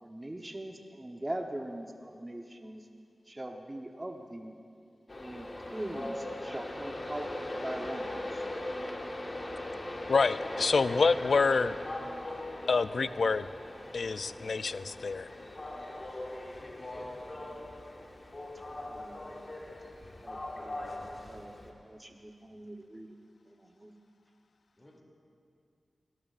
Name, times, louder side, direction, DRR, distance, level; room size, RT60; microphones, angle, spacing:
voice 1, 0.0-2.8 3.3-4.6 5.2-7.3 7.6-8.1 18.9-19.2 20.2-20.9 21.2-23.1 23.8-23.9, right 1 dB, 25° right, 3 dB, 0.9 m, -41 dB
Train, 5.1-21.7, left 1 dB, 45° left, 1.4 m, -40 dB
voice 2, 10.1-11.7 12.7-13.5 13.9-15.3, left 4 dB, 75° left, 14 dB, 0.3 m, -27 dB
voice 3, 16.4-17.5 24.8-25.0, left 1 dB, 25° left, -2 dB, 2.5 m, -53 dB
19.5 x 17.5 x 2.5 m, 2.4 s
cardioid pair, 60°, 0 cm